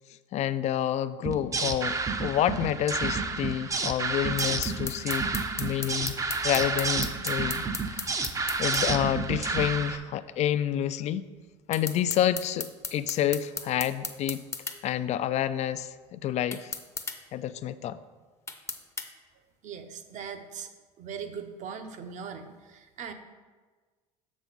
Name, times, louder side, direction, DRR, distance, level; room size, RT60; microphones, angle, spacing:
voice 1, 0.3-5.3 5.6-8.0 8.6-11.2 11.7-14.4 14.8-16.7 17.3-18.0, left 11 dB, 45° left, 14 dB, 0.4 m, -29 dB
sound 1, 1.2-10.0, right 4 dB, 20° right, 0.6 m, -30 dB
sound 2, 4.4-8.9 11.7-14.8 16.5-17.2 18.5-19.1, left 4 dB, 20° left, 0.7 m, -35 dB
voice 2, 19.6-20.7 21.0-23.1, right 6 dB, 50° right, 7 dB, 0.8 m, -40 dB
6.9 x 6.1 x 3.9 m, 1.4 s
supercardioid pair, 85°, 16 cm